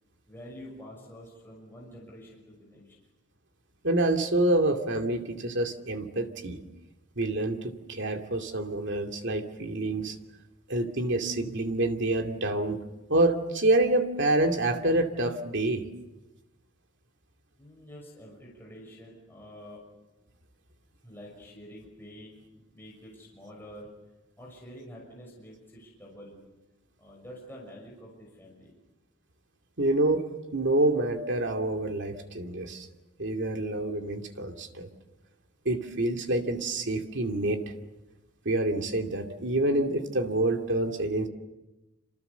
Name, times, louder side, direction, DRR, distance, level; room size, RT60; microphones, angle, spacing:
voice 1, 0.3-2.9 17.6-19.8 21.0-23.9 24.4-26.3 27.0-28.7, equal, 10° left, -4 dB, 6.1 m, -47 dB
voice 2, 3.8-6.6 7.2-10.2 10.7-12.8 13.1-15.8 29.8-30.2 30.5-32.9 33.2-34.9 35.6-37.6 38.4-41.3, right 2 dB, 55° right, 4 dB, 2.5 m, -27 dB
27.5 x 27.0 x 7.0 m, 1.1 s
head